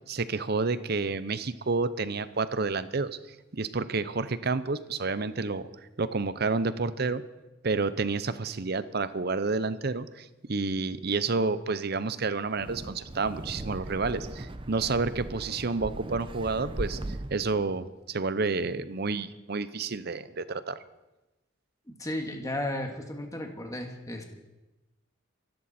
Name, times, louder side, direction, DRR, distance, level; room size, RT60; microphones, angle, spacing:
voice 1, 0.1-3.2 3.5-5.7 6.0-7.2 7.6-17.0 17.3-20.8, right 4 dB, 55° right, 14 dB, 0.8 m, -29 dB
Wind, 12.5-17.5, right 1 dB, 25° right, 0.7 m, -38 dB
voice 2, 21.9-24.2, left 1 dB, 15° left, 3 dB, 1.9 m, -34 dB
25.0 x 12.5 x 4.4 m, 1.0 s
head